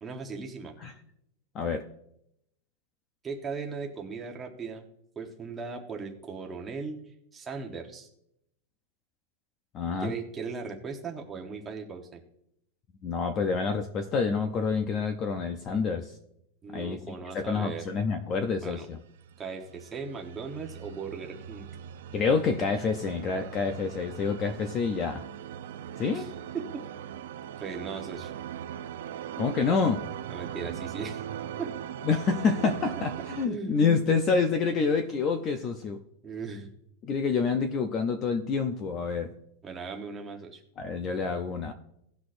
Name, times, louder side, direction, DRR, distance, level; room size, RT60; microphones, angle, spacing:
voice 1, 0.0-0.7 3.2-4.8 5.1-7.0 7.3-8.1 10.0-12.2 16.6-17.9 18.6-18.9 19.4-21.7 26.1-26.3 26.5-26.8 27.6-28.3 30.3-31.2 31.6-31.7 33.4-33.8 36.2-36.7 39.6-40.6, right 5 dB, 15° right, 2 dB, 1.1 m, -38 dB
voice 2, 1.5-1.9 9.7-10.1 13.0-16.1 16.7-19.0 22.1-25.2 26.0-26.3 29.4-30.0 32.0-36.0 37.0-39.3 40.8-41.7, left 5 dB, 20° left, 7 dB, 0.5 m, -27 dB
sound 1, 19.1-33.5, right 10 dB, 70° right, 0.6 m, -40 dB
17.5 x 6.3 x 2.5 m, 0.77 s
supercardioid pair, 175°, 0 cm